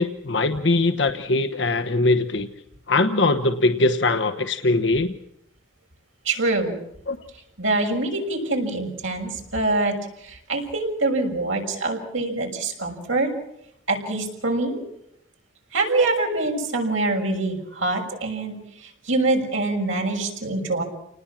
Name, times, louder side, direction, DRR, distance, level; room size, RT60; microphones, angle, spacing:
voice 1, 0.0-2.5 2.9-5.1 7.1-7.2, left 2 dB, 65° left, 7 dB, 1.2 m, -21 dB
voice 2, 6.2-6.8 7.6-13.3 13.9-14.8 15.7-20.8, right 2 dB, 80° right, 1 dB, 6.4 m, -25 dB
29.5 x 19.5 x 7.4 m, 0.79 s
head